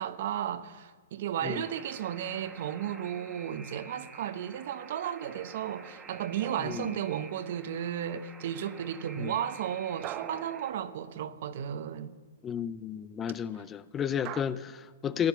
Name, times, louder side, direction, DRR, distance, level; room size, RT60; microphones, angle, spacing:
voice 1, 0.0-12.1, right 9 dB, 55° right, 0.9 m, -34 dB
Alarm, 1.5-10.7, right 4 dB, 15° right, 1.3 m, -50 dB
sound 1, 6.4-7.6 10.0-11.7 14.2-14.4, right 14 dB, 35° right, 0.5 m, -43 dB
voice 2, 6.6-6.9 9.2-9.3 12.4-15.3, left 8 dB, 20° left, 0.4 m, -33 dB
15.5 x 9.8 x 7.1 m
hypercardioid pair, 130°, 0 cm